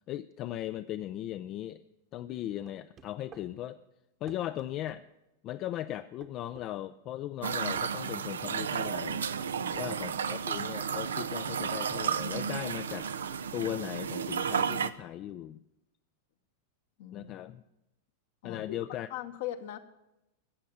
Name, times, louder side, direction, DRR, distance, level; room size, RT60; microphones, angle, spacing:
voice 1, 0.1-1.8 2.1-3.8 4.2-5.0 5.4-9.3 9.7-13.1 13.5-15.6 17.1-17.6 18.4-19.1, left 13 dB, 40° left, 11 dB, 0.4 m, -38 dB
sound 1, 2.7-3.5 4.3-5.0 6.2-6.7 7.8-7.9 9.1-9.9, right 7 dB, 30° right, 1.1 m, -53 dB
sound 2, 7.4-14.9, right 7 dB, 85° right, 0.6 m, -33 dB
voice 2, 9.5-10.4 17.0-17.3 18.4-18.8 19.1-19.8, left 11 dB, 65° left, 8 dB, 1.1 m, -41 dB
14.5 x 7.7 x 8.4 m, 0.90 s
hypercardioid pair, 100°, 0 cm